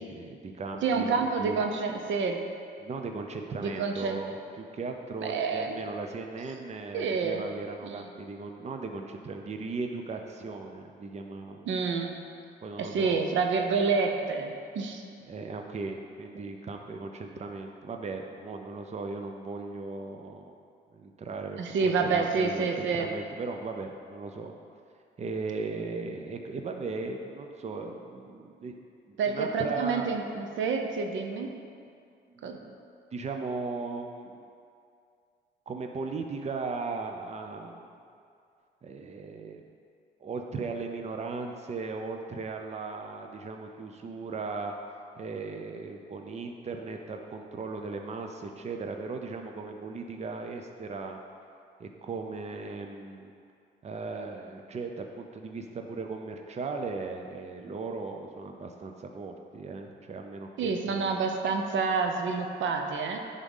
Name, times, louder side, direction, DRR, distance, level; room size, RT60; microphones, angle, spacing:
voice 1, 0.0-1.6 2.8-11.7 12.6-13.2 15.2-20.5 20.9-24.5 25.2-28.8 29.1-30.1 32.3-32.8 33.1-34.4 35.7-37.9 38.8-39.6 40.2-44.7 45.2-51.2 51.8-53.3 53.8-61.2, right 4 dB, 35° right, 3 dB, 0.7 m, -37 dB
voice 2, 0.8-2.4 3.6-4.2 5.2-5.8 6.9-7.4 7.8-8.0 11.7-12.1 12.8-15.0 21.6-23.1 29.2-31.5 32.4-32.7 60.6-63.2, right 4 dB, 75° right, 4 dB, 0.8 m, -28 dB
10.0 x 3.7 x 5.4 m, 2.4 s
cardioid pair, 90°, 20 cm